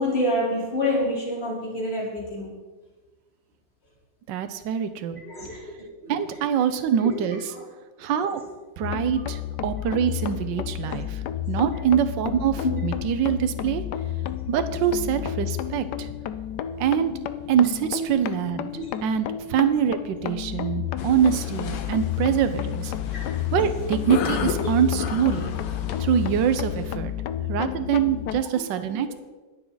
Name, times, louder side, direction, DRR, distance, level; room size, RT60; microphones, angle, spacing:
voice 1, 0.0-2.6 5.2-5.6 6.0-6.1 7.1-7.3 9.9-10.0 12.6-12.8 17.9-18.1 18.8-18.9 28.7-29.1, left 1 dB, 30° left, -5 dB, 3.8 m, -27 dB
voice 2, 4.3-5.2 6.1-7.4 8.0-8.4 8.8-11.2 11.5-13.8 14.5-16.1 16.8-17.1 17.5-18.7 19.0-22.9 23.5-25.5 26.0-27.1 27.5-29.1, right 9 dB, 70° right, 9 dB, 1.4 m, -24 dB
sound 1, 8.8-28.4, left 11 dB, 70° left, 1.1 m, -31 dB
sound 2, 21.0-27.0, left 7 dB, 85° left, 1.7 m, -34 dB
22.0 x 7.3 x 4.0 m, 1.2 s
omnidirectional pair, 2.1 m